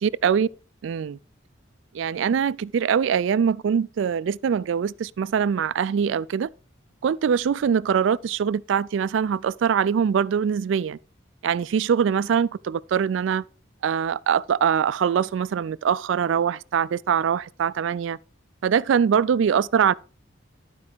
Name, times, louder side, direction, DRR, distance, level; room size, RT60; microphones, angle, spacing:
voice 1, 0.0-0.5 0.8-1.2 1.9-6.5 7.0-11.0 11.4-13.4 13.8-18.2 18.6-19.9, right 7 dB, 75° right, 0.3 m, -23 dB
12.0 x 4.7 x 5.0 m
head